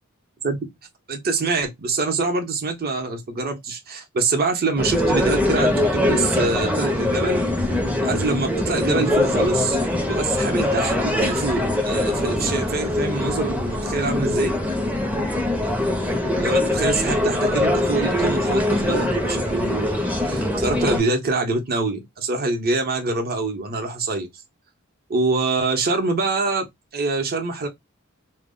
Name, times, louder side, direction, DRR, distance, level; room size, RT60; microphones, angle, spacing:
voice 1, 1.1-7.4 8.0-9.8 10.1-14.5 16.4-24.3 25.1-26.6 26.9-27.7, right 3 dB, 45° right, 0.7 m, -25 dB
sound 1, 4.8-21.0, left 1 dB, 5° right, 0.5 m, -22 dB
2.1 x 2.1 x 3.6 m
head